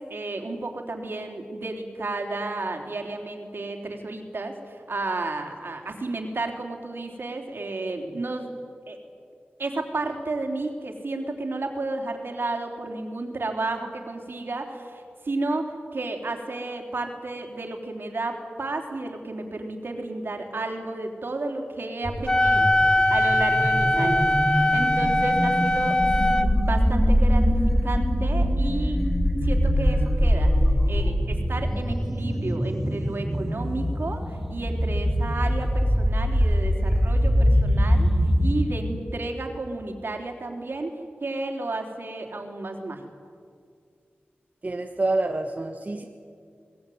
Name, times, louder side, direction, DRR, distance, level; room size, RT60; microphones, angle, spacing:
voice 1, 0.0-8.5 8.9-9.0 9.6-24.1 24.7-26.0 26.4-29.0 29.4-30.5 30.9-38.1 38.4-40.9 41.2-43.0, right 2 dB, 60° right, 3 dB, 3.7 m, -32 dB
sound 1, 22.0-38.6, equal, ahead, 2.7 m, -23 dB
Wind instrument woodwind instrument, 22.3-26.5, left 1 dB, 20° left, 1.3 m, -21 dB
voice 2, 23.9-24.4 44.6-46.0, right 2 dB, 40° right, 3 dB, 1.5 m, -28 dB
23.0 x 19.0 x 9.5 m, 2.2 s
wide cardioid pair, 80°, 4 cm